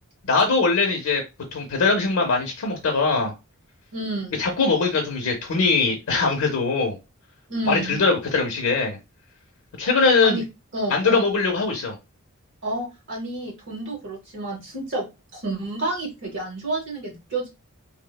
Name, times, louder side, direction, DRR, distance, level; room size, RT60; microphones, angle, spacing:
voice 1, 0.2-1.2 1.5-3.3 4.4-7.0 7.7-9.0 9.8-10.4 10.9-12.0, left 4 dB, 85° left, 2 dB, 0.6 m, -21 dB
voice 2, 3.9-4.5 7.5-8.1 10.2-10.4 10.7-11.2 12.6-17.5, right 2 dB, 55° right, -1 dB, 0.7 m, -30 dB
3.0 x 2.0 x 2.2 m, 0.26 s
head